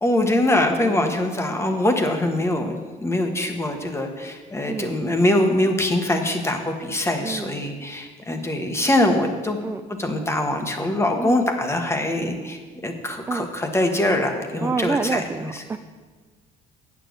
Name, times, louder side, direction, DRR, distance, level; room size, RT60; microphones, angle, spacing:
voice 1, 0.0-2.7 3.0-9.6 10.0-15.6, left 1 dB, 15° left, 5 dB, 1.3 m, -23 dB
voice 2, 0.8-1.2 4.7-5.0 7.2-7.8 9.6-9.8 11.2-11.4 13.3-13.5 14.6-15.8, right 4 dB, 15° right, 8 dB, 0.3 m, -28 dB
8.7 x 7.2 x 6.4 m, 1.4 s
cardioid pair, 110°, 17 cm